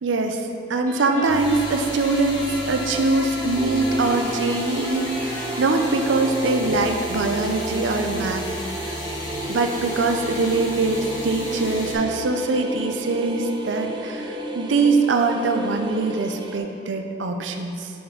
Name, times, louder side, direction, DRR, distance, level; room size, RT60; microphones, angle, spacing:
voice 1, 0.0-8.5 8.8-9.0 9.5-17.9, right 3 dB, 80° right, 5 dB, 0.5 m, -23 dB
sound 1, 0.9-6.2, left 1 dB, 10° left, 1.0 m, -36 dB
sound 2, 1.3-11.9, left 2 dB, 75° left, 1.3 m, -34 dB
sound 3, 3.5-16.6, right 1 dB, 25° right, 0.5 m, -32 dB
6.7 x 4.3 x 5.1 m, 2.6 s
head